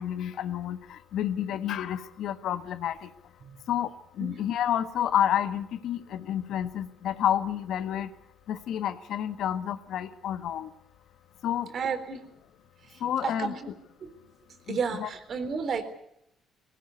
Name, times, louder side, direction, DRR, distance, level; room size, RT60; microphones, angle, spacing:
voice 1, 0.0-3.1 3.7-8.1 8.5-10.7 11.4-11.7 13.0-13.5 14.7-15.1, left 10 dB, 75° left, 11 dB, 1.4 m, -30 dB
voice 2, 11.7-12.3 12.8-13.7 14.0-14.1 14.7-15.8, right 5 dB, 55° right, 8 dB, 3.9 m, -32 dB
19.5 x 18.0 x 9.6 m, 0.76 s
cardioid pair, 95°, 0 cm